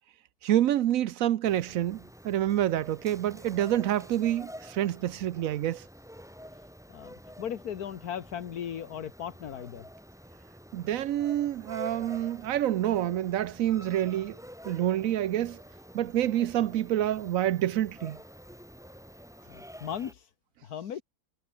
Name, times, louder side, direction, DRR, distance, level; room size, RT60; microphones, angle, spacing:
voice 1, 0.4-5.9 10.7-14.4 14.6-15.6 15.9-18.2, right 12 dB, 65° right, 1.0 m, -27 dB
sound 1, 1.4-20.1, equal, ahead, 7.3 m, -48 dB
voice 2, 6.9-9.8 19.5-20.3 20.6-21.0, left 9 dB, 80° left, 1.7 m, -37 dB
omnidirectional pair, 1.6 m